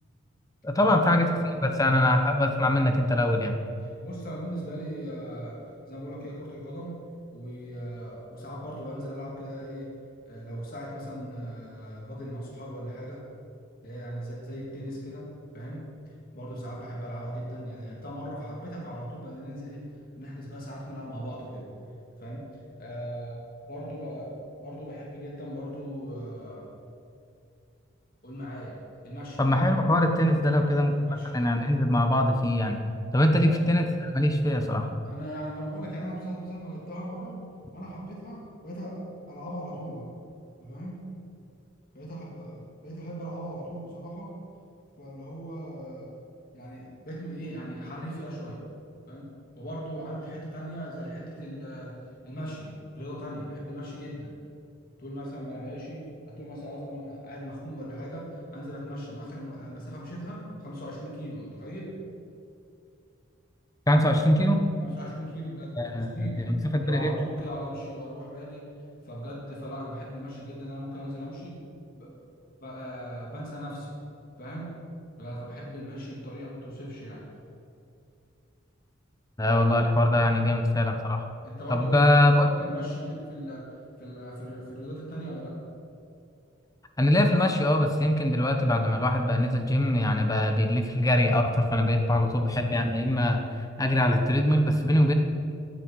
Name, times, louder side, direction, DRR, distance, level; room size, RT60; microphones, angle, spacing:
voice 1, 0.6-1.3 1.6-3.6 29.4-30.9 31.3-32.8 33.1-34.9 63.9-64.6 65.8-67.1 79.4-81.2 81.7-82.5 87.0-93.4 93.8-95.1, left 1 dB, 15° left, 5 dB, 1.0 m, -23 dB
voice 2, 1.5-2.0 4.0-7.1 7.3-9.9 10.3-13.2 13.8-15.3 15.5-15.9 16.3-19.9 20.2-21.7 22.1-22.5 22.8-26.7 28.2-28.8 29.0-29.5 30.4-31.3 33.4-33.6 35.1-37.4 37.7-40.1 40.6-41.0 41.9-44.4 45.0-46.1 46.5-48.6 49.1-52.0 52.2-54.3 55.0-62.0 64.8-68.7 69.0-71.7 71.9-72.1 72.6-73.9 74.4-74.8 75.2-77.2 81.4-83.7 84.0-85.5, equal, 45° left, -4 dB, 2.9 m, -38 dB
14.5 x 9.3 x 4.7 m, 2.5 s
head